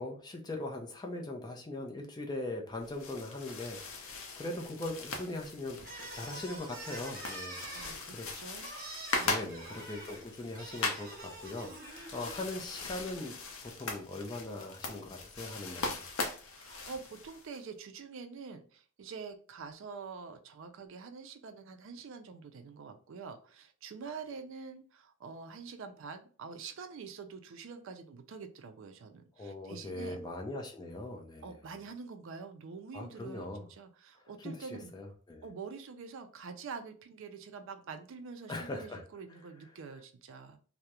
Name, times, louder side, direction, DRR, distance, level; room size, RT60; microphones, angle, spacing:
voice 1, 0.0-3.8 4.4-8.3 9.2-13.3 13.6-16.0 29.4-31.5 32.9-33.6 34.4-34.6 34.9-35.4 38.5-39.0, left 2 dB, 20° left, 1 dB, 0.4 m, -40 dB
sound 1, 2.8-17.6, left 3 dB, 70° left, 0.5 m, -40 dB
sound 2, 5.8-12.4, right 2 dB, 40° right, 0.9 m, -46 dB
voice 2, 7.5-8.7 9.2-9.6 16.5-30.2 31.4-34.9 35.4-40.6, right 5 dB, 65° right, 8 dB, 0.4 m, -46 dB
2.3 x 2.0 x 2.8 m, 0.41 s
head